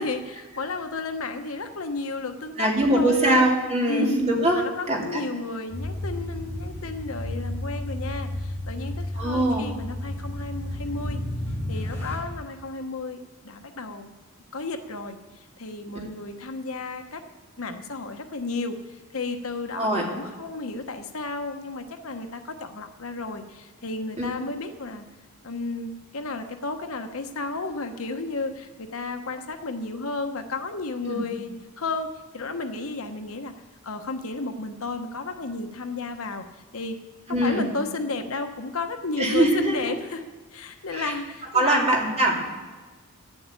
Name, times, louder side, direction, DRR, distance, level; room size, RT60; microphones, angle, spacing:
voice 1, 0.0-3.4 3.9-4.2 4.5-11.2 11.7-13.2 13.4-14.1 14.5-17.2 17.6-25.0 25.4-33.5 33.8-36.4 36.7-37.0 37.3-40.2 40.5-41.9, left 3 dB, 75° left, 7 dB, 1.1 m, -33 dB
voice 2, 2.6-4.6 4.9-5.2 9.2-9.7 19.7-20.0 24.2-24.3 31.1-31.2 37.3-37.6 39.2-40.0 40.9-41.1 41.5-42.4, right 1 dB, 30° right, -1 dB, 2.6 m, -22 dB
sound 1, 5.7-12.2, left 1 dB, 10° left, 3.2 m, -32 dB
12.0 x 7.8 x 9.0 m, 1.3 s
head